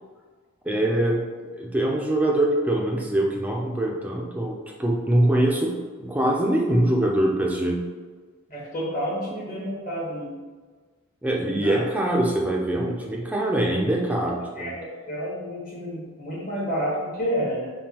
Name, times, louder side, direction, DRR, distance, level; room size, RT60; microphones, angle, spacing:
voice 1, 0.6-1.2 1.6-5.7 6.0-7.8 11.2-14.7, right 1 dB, 5° right, -1 dB, 0.4 m, -23 dB
voice 2, 8.5-10.3 11.5-11.8 14.3-17.7, equal, 35° left, -7 dB, 1.2 m, -30 dB
5.2 x 2.3 x 2.9 m, 1.4 s
head